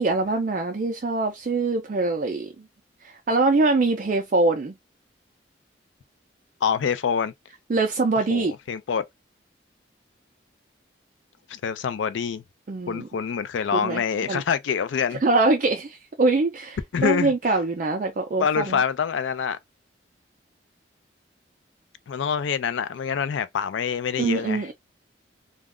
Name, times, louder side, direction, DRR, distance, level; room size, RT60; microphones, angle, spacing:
voice 1, 0.0-2.5 3.0-4.7 7.7-8.5 12.7-13.1 13.7-14.0 14.3-14.4 15.2-18.8 24.2-24.7, right 3 dB, 45° right, 0.4 m, -23 dB
voice 2, 6.6-7.3 8.3-9.0 11.5-12.4 12.9-15.2 16.9-17.3 18.4-19.6 22.1-24.7, left 7 dB, 80° left, 0.4 m, -26 dB
2.3 x 2.1 x 3.5 m
head